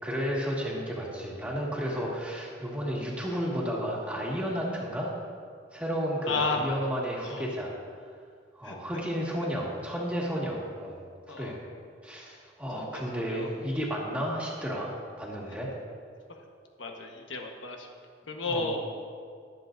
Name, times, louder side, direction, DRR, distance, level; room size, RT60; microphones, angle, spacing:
voice 1, 0.0-5.1 5.7-7.7 8.5-11.0 11.3-11.6 12.0-14.9 15.2-15.7 18.5-18.7, equal, 5° right, -4 dB, 1.7 m, -32 dB
voice 2, 6.3-6.8 7.3-7.4 8.6-8.7 11.3-11.6 12.8-13.5 16.8-17.9 18.3-18.8, left 3 dB, 90° left, 2 dB, 1.2 m, -33 dB
22.0 x 7.6 x 2.6 m, 2.1 s
head